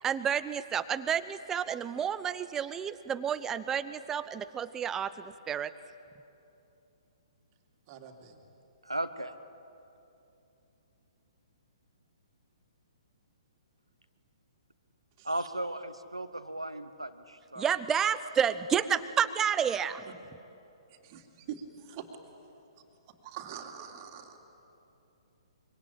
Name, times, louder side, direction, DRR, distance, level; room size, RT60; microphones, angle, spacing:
voice 1, 0.0-5.7 17.6-20.1, right 8 dB, 15° right, 14 dB, 0.8 m, -30 dB
voice 2, 7.9-8.4 15.2-15.5 20.9-22.1 23.1-24.4, right 9 dB, 35° right, 3 dB, 2.8 m, -44 dB
voice 3, 8.8-9.3 15.2-17.7, right 1 dB, 90° right, 11 dB, 1.3 m, -36 dB
25.5 x 24.5 x 8.7 m, 2.8 s
figure-of-eight pair, 125°, 3 cm